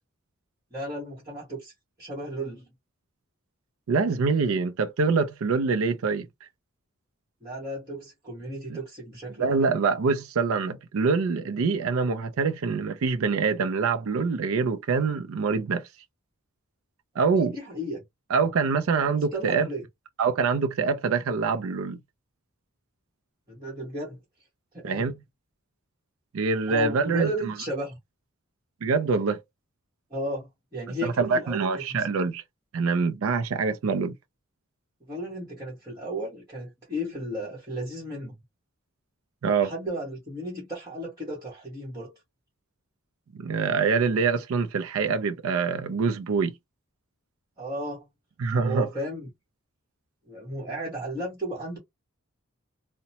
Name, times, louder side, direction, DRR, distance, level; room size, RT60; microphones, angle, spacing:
voice 1, 0.7-1.7 2.0-2.7 7.4-9.7 17.1-18.0 19.1-19.8 23.5-24.2 24.7-25.1 26.7-28.0 30.1-32.1 35.1-38.3 39.6-42.1 47.6-48.0 48.5-49.3 50.3-51.8, right 1 dB, 20° right, 1.3 m, -34 dB
voice 2, 3.9-6.3 8.7-8.8 9.4-15.8 17.2-17.6 18.3-19.7 20.2-22.0 24.8-25.1 26.3-27.5 28.8-29.4 31.0-32.4 32.7-34.1 39.4-39.7 43.3-46.5 48.4-48.9, right 5 dB, 75° right, 0.4 m, -25 dB
2.8 x 2.1 x 2.8 m
head